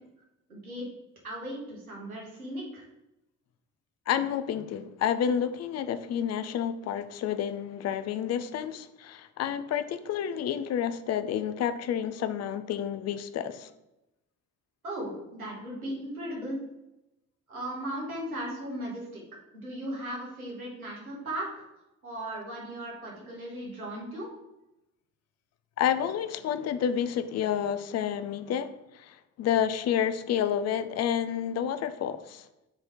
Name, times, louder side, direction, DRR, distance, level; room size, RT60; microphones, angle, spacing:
voice 1, 0.5-0.9 1.2-2.9 14.8-16.6 17.5-19.2 19.5-21.6 22.0-24.3, right 1 dB, 85° right, -3 dB, 2.0 m, -37 dB
voice 2, 4.1-13.7 25.8-32.5, left 9 dB, 40° left, 12 dB, 0.7 m, -30 dB
7.1 x 5.0 x 4.3 m, 0.91 s
figure-of-eight pair, 45°, 42 cm